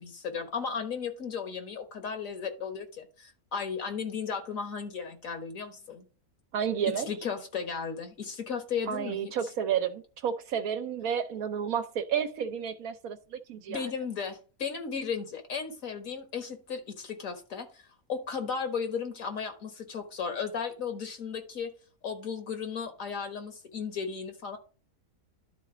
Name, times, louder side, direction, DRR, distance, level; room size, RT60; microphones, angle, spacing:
voice 1, 0.0-6.1 7.0-9.3 13.7-21.7 22.0-24.6, left 6 dB, 65° left, 1.7 m, -35 dB
voice 2, 6.5-7.1 8.9-13.8, right 8 dB, 75° right, 1.2 m, -31 dB
11.5 x 4.1 x 4.9 m
omnidirectional pair, 1.5 m